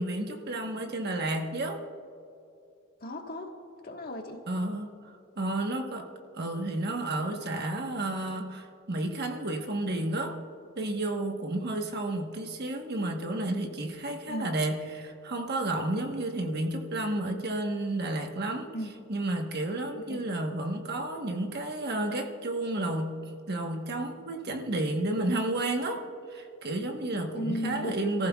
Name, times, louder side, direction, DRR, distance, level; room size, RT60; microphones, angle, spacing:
voice 1, 0.0-1.8 4.5-6.1 6.3-10.4 10.8-18.7 19.1-26.0 26.3-28.3, right 2 dB, 50° right, 1.2 m, -31 dB
voice 2, 3.0-3.5 3.8-4.4 14.3-14.5 18.7-18.9 20.0-20.2 27.3-28.0, equal, 45° left, 1.4 m, -35 dB
26.5 x 15.0 x 2.4 m
head